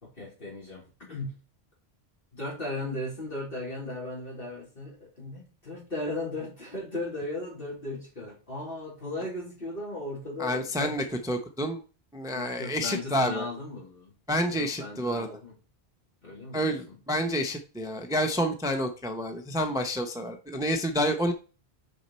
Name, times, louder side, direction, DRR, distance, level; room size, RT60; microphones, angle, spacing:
voice 1, 0.0-1.3 2.3-11.2 12.3-14.1 14.5-15.6 16.2-16.7, left 2 dB, 55° left, -4 dB, 4.0 m, -37 dB
voice 2, 10.4-11.8 12.1-13.4 14.3-15.3 16.5-21.3, equal, 5° right, 5 dB, 0.7 m, -29 dB
6.4 x 5.4 x 4.3 m, 0.35 s
omnidirectional pair, 1.1 m